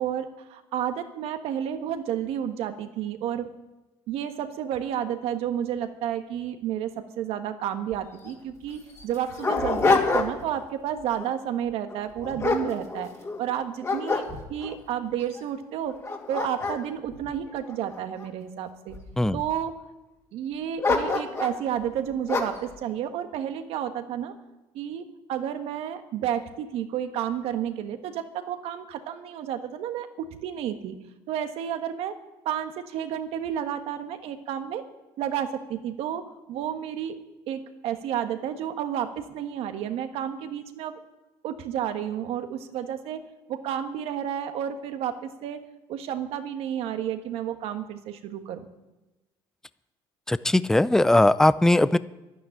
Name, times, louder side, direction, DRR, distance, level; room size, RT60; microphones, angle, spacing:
voice 1, 0.0-3.5 4.1-13.1 13.4-16.0 16.3-19.0 19.3-19.7 20.3-24.3 24.7-31.0 31.3-32.2 32.4-34.8 35.2-36.2 36.5-37.2 37.5-41.0 41.4-43.2 43.5-45.6 45.9-48.7, right 9 dB, 70° right, 8 dB, 1.4 m, -31 dB
Dog, 7.9-8.0 8.2-8.3 8.9-10.6 11.0-11.3 11.9-13.4 13.8-14.7 15.3-15.4 15.9-18.2 18.9-19.5 20.8-21.6 22.3-22.7, left 3 dB, 30° left, 2.5 m, -27 dB
voice 2, 50.3-52.0, left 1 dB, 5° left, 16 dB, 0.5 m, -19 dB
12.0 x 9.4 x 9.9 m, 1.0 s
cardioid pair, 100°, 10 cm